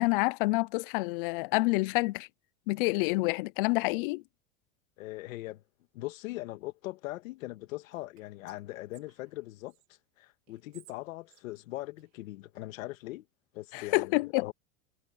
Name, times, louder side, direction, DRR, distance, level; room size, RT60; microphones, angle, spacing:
voice 1, 0.0-2.3 2.7-4.2 13.7-14.5, left 24 dB, 45° left, 0.4 m, -28 dB
voice 2, 5.0-5.6 5.9-9.8 10.2-13.3 13.5-14.5, left 18 dB, 90° left, 1.8 m, -40 dB
Whispering, 7.9-9.9 10.5-12.6, right 19 dB, 85° right, 5.1 m, -62 dB
supercardioid pair, 170°, 39 cm